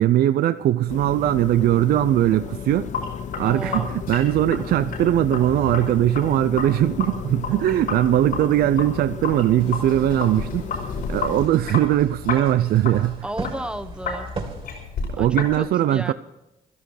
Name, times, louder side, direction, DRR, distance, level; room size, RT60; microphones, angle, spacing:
voice 1, 0.0-2.9 3.4-10.7 11.1-13.3 15.2-16.1, right 13 dB, 75° right, 13 dB, 0.5 m, -20 dB
sound 1, 0.9-11.5, left 8 dB, 50° left, 0.6 m, -34 dB
Sink (filling or washing), 2.7-15.6, left 4 dB, 85° left, 5.2 m, -33 dB
voice 2, 3.4-4.0 13.2-14.3 15.2-16.1, right 1 dB, 5° right, 8 dB, 1.1 m, -33 dB
sound 2, 9.6-14.8, right 3 dB, 35° right, 2.6 m, -39 dB
15.5 x 13.0 x 4.9 m, 0.91 s
cardioid pair, 90°, 16 cm